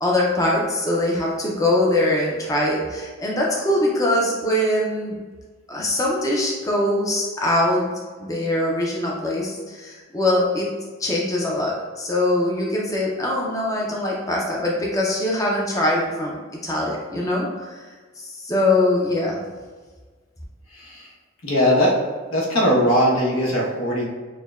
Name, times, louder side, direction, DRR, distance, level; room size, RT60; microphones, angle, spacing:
voice 1, 0.0-5.2 5.7-7.9 8.2-10.7 11.0-17.9 18.2-19.4, left 1 dB, 15° left, -3 dB, 0.5 m, -22 dB
voice 2, 20.8-21.1 21.4-22.0 22.3-24.1, equal, 85° left, -3 dB, 1.0 m, -19 dB
6.4 x 2.1 x 2.4 m, 1.4 s
head